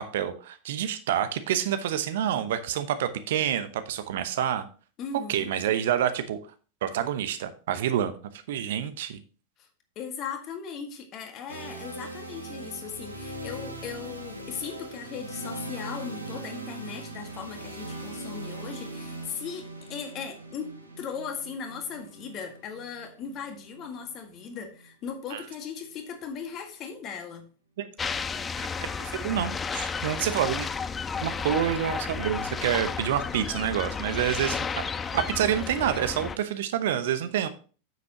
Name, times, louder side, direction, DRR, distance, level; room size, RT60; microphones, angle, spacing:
voice 1, 0.0-4.7 5.3-6.4 6.8-8.2 8.5-9.2 25.3-25.4 27.8-27.9 29.0-30.7 31.2-34.8 35.1-37.5, right 10 dB, 55° right, 0.8 m, -28 dB
voice 2, 5.0-5.5 10.0-27.5, left 6 dB, 35° left, 1.8 m, -38 dB
sound 1, 11.5-25.3, right 2 dB, 85° right, 1.7 m, -40 dB
sound 2, 28.0-36.4, left 5 dB, 15° left, 0.4 m, -32 dB
9.2 x 7.6 x 2.9 m
figure-of-eight pair, 90°, 0 cm